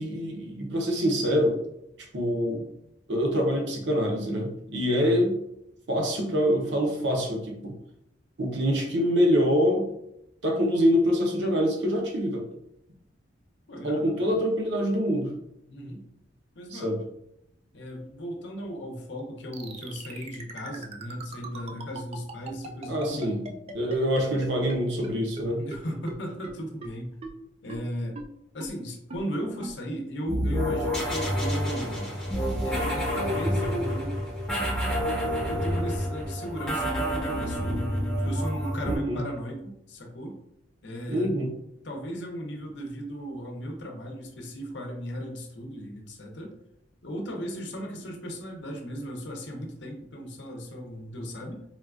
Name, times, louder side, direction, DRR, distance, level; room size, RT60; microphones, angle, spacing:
voice 1, 0.0-1.6 2.1-2.7 3.1-5.4 5.9-7.7 8.4-9.9 10.4-12.5 13.8-15.3 16.7-17.0 22.9-23.4 23.7-25.6 38.8-39.2 41.1-41.5, equal, 65° right, 0 dB, 0.7 m, -25 dB
voice 2, 4.9-5.3 13.7-14.3 15.7-16.0 16.5-17.0 17.7-23.4 25.6-27.2 27.6-28.2 28.5-32.2 32.6-34.2 35.5-37.9 38.2-40.4 40.8-41.3 41.8-46.6 47.0-51.6, equal, 65° left, 1 dB, 0.7 m, -36 dB
sound 1, 19.5-24.8 25.0-25.1 25.4-25.5 25.7-25.8 26.1-26.2 26.4-26.5 26.8-26.9 27.2-27.3 27.7-27.8 28.2-28.3 28.6-28.7 29.1-29.2 29.6-29.7, right 3 dB, 30° right, 0.3 m, -39 dB
sound 2, 30.3-39.0, equal, 5° left, 0.7 m, -28 dB
3.7 x 2.3 x 2.4 m, 0.80 s
head